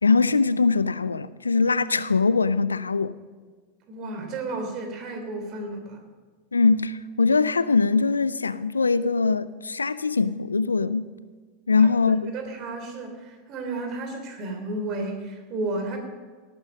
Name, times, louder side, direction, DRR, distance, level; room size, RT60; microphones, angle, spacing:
voice 1, 0.0-3.1 6.5-11.1 11.7-12.3, left 4 dB, 85° left, 0.5 m, -22 dB
voice 2, 3.9-6.0 11.8-11.9 12.2-16.0, right 2 dB, 45° right, 3.2 m, -32 dB
17.5 x 9.6 x 5.4 m
figure-of-eight pair, 85°, 0 cm